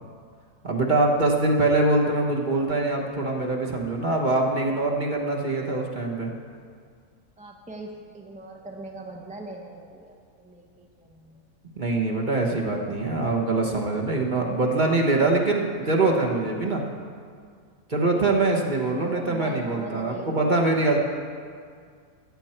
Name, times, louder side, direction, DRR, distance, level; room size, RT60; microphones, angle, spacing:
voice 1, 0.6-6.3 11.8-16.8 17.9-21.0, right 2 dB, 35° right, 0 dB, 1.2 m, -23 dB
voice 2, 7.4-11.4 18.9-20.6, right 2 dB, 5° right, 1 dB, 0.7 m, -41 dB
15.0 x 8.9 x 4.4 m, 2.1 s
omnidirectional pair, 1.6 m